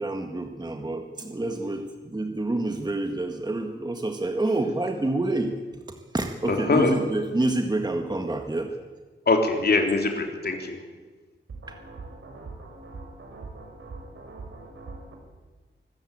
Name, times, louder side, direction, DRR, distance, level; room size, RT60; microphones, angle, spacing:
voice 1, 0.0-5.5 6.1-8.7, right 2 dB, 20° right, 1.7 m, -28 dB
voice 2, 6.5-7.0 9.3-10.8, left 3 dB, 50° left, 3.5 m, -23 dB
voice 3, 11.5-15.2, right 3 dB, 80° right, 6.2 m, -42 dB
24.5 x 14.5 x 8.8 m
wide cardioid pair, 140°, 21 cm